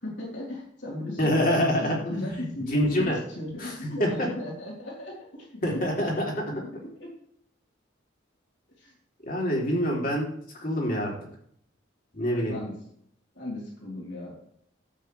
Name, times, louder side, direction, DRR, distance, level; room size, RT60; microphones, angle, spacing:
voice 1, 0.0-5.8 6.5-7.1 8.8-8.9 12.3-12.7 13.3-14.4, left 1 dB, 65° left, -3 dB, 3.9 m, -36 dB
voice 2, 1.2-3.2 3.6-3.7 4.0-4.3 5.6-6.2 9.2-10.3 10.6-11.1 12.1-12.5, equal, 45° left, -2 dB, 3.3 m, -26 dB
12.5 x 8.4 x 3.4 m, 0.67 s
head